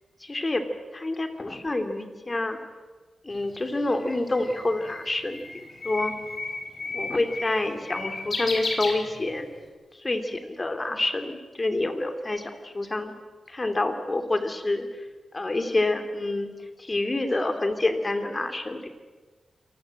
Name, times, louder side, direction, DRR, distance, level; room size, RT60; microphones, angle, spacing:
voice 1, 0.2-0.7 0.9-2.6 3.2-6.1 6.9-9.5 9.9-13.1 13.5-14.9 15.3-16.5 16.8-18.9, left 2 dB, 30° left, 8 dB, 3.0 m, -27 dB
Bird, 3.4-9.6, left 3 dB, 55° left, 4.8 m, -34 dB
26.5 x 20.0 x 7.7 m, 1.3 s
cardioid pair, 85°, 0 cm